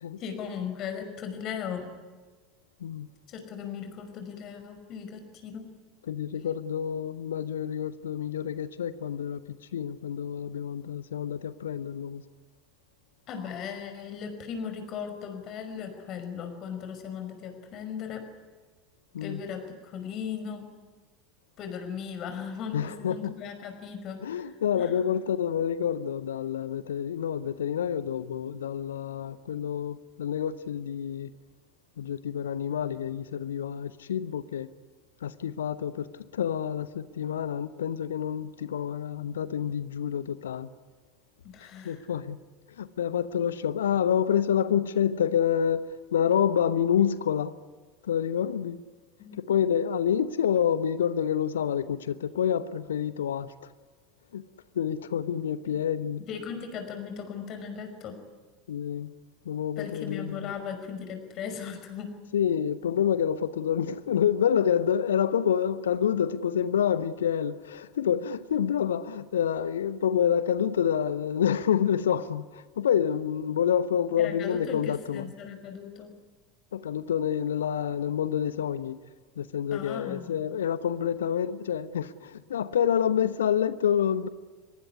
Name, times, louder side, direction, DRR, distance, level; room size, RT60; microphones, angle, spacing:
voice 1, 0.2-1.9 3.3-5.7 13.3-18.3 19.2-20.7 21.6-25.1 41.4-42.0 49.2-49.4 55.6-55.8 56.2-58.2 59.8-62.2 74.2-76.2 79.7-80.3, left 7 dB, 40° left, 5.4 m, -38 dB
voice 2, 6.1-9.4 9.7-12.2 19.1-19.4 22.7-23.3 24.2-31.3 32.0-34.7 35.2-36.1 36.3-40.7 41.8-42.4 42.8-47.6 48.0-48.8 49.4-53.5 54.3-54.4 54.7-56.2 58.7-59.1 59.4-60.5 62.3-75.3 76.7-79.0 79.4-84.3, left 8 dB, 70° left, 1.0 m, -28 dB
24.0 x 22.0 x 9.8 m
figure-of-eight pair, 75°, 0 cm